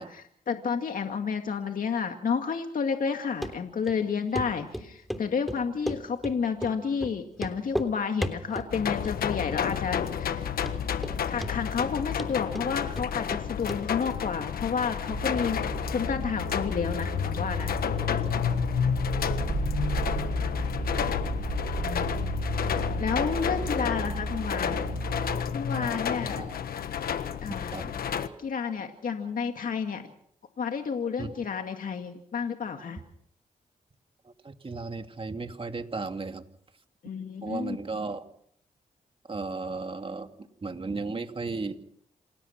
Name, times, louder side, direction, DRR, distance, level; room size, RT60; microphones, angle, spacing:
voice 1, 0.0-10.5 11.3-15.6 15.9-17.8 21.8-22.3 23.0-24.8 25.5-26.4 27.4-27.8 28.4-30.1 30.6-33.0 37.0-37.8, left 6 dB, 65° left, 5 dB, 2.2 m, -31 dB
Run, 3.4-3.5 3.9-4.0 4.3-4.5 4.7-5.2 5.5-6.3 6.6-6.7 7.0-7.1 7.4-7.9 8.2-8.7 9.0-9.5 9.8-9.9 10.3-10.4 10.7-11.2 11.4-11.9 12.2-13.4 13.7-13.8 14.1-14.2, equal, ahead, 3.3 m, -33 dB
sound 1, 8.7-28.3, left 8 dB, 85° left, 1.4 m, -30 dB
sound 2, 15.1-25.4, right 4 dB, 65° right, 1.5 m, -34 dB
voice 2, 19.9-20.3 25.7-26.6 27.7-27.9 31.2-31.3 34.2-36.4 37.4-38.2 39.3-41.7, right 3 dB, 35° right, 6 dB, 2.6 m, -35 dB
27.5 x 17.5 x 5.9 m, 0.66 s
cardioid pair, 60°, 15 cm